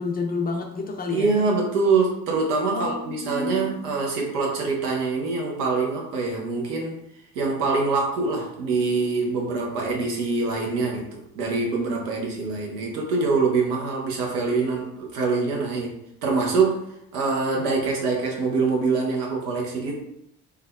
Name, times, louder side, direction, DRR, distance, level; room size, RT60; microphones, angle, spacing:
voice 1, 0.0-1.3 2.7-3.8, left 3 dB, 20° left, 1 dB, 0.5 m, -29 dB
voice 2, 1.1-7.0 7.3-16.8 17.1-20.0, right 4 dB, 75° right, -1 dB, 0.9 m, -24 dB
3.4 x 2.3 x 2.2 m, 0.78 s
hypercardioid pair, 55°, 46 cm